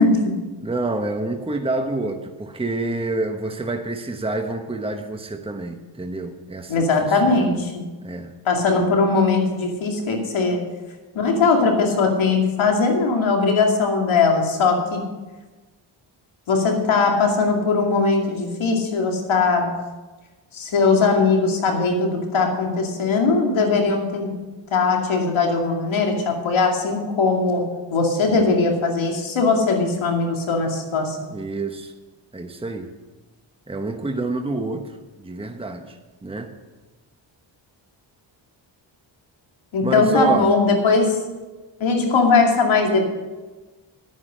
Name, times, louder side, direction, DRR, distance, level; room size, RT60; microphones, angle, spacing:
voice 1, 0.0-0.4 6.7-7.9 8.5-10.7 11.1-15.0 16.5-19.8 20.5-24.3 24.7-31.2 39.7-41.2 41.8-43.1, left 4 dB, 80° left, 2 dB, 2.5 m, -20 dB
voice 2, 0.6-7.6 8.0-8.3 28.3-28.6 31.3-31.9 32.3-32.9 33.7-36.5 39.8-40.5, right 2 dB, 10° right, 5 dB, 1.1 m, -28 dB
11.0 x 9.6 x 6.3 m, 1.2 s
cardioid pair, 65°, 47 cm